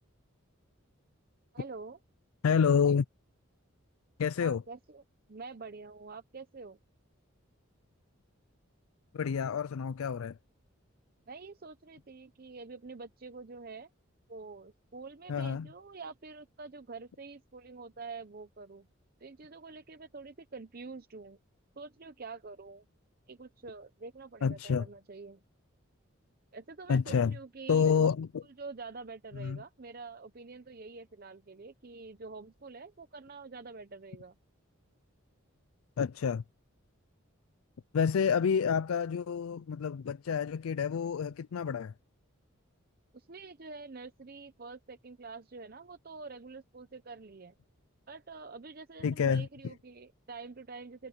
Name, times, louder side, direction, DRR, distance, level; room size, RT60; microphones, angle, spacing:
voice 1, 1.5-2.0 4.4-5.0 5.3-6.8 11.3-13.9 14.3-18.9 19.2-21.4 21.8-22.8 23.3-25.4 26.5-28.1 28.6-34.4 38.5-38.6 43.1-47.6 48.1-51.1, right 4 dB, 45° right, 0.7 m, -46 dB
voice 2, 2.4-3.1 4.2-4.6 9.1-10.4 15.3-15.7 24.4-24.9 26.9-27.4 27.7-28.3 29.4-29.6 36.0-36.4 37.9-41.9 49.0-49.7, left 6 dB, 80° left, 0.4 m, -28 dB
head